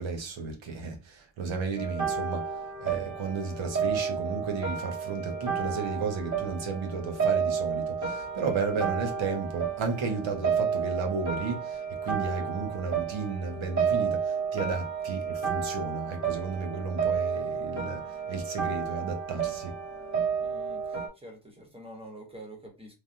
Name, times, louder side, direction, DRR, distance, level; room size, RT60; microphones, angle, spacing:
voice 1, 0.0-19.8, right 4 dB, 80° right, 0.9 m, -33 dB
sound 1, 1.8-21.1, right 6 dB, 40° right, 0.9 m, -31 dB
voice 2, 20.4-22.9, right 1 dB, 10° right, 1.0 m, -47 dB
3.3 x 2.2 x 2.6 m
wide cardioid pair, 125°, 46 cm